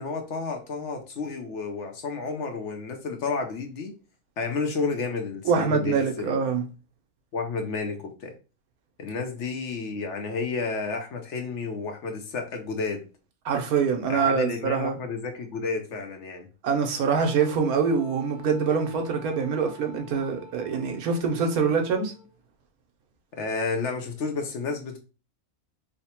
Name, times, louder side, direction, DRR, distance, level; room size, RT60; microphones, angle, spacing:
voice 1, 0.0-3.9 4.4-6.4 7.3-8.3 9.0-13.0 14.1-16.5 23.4-25.0, left 4 dB, 60° left, 0.9 m, -31 dB
voice 2, 5.4-6.6 13.4-15.0 16.6-22.1, right 5 dB, 85° right, 1.2 m, -24 dB
Wind instrument woodwind instrument, 17.2-22.3, left 3 dB, 40° right, 1.4 m, -49 dB
3.2 x 2.1 x 4.2 m
omnidirectional pair, 1.5 m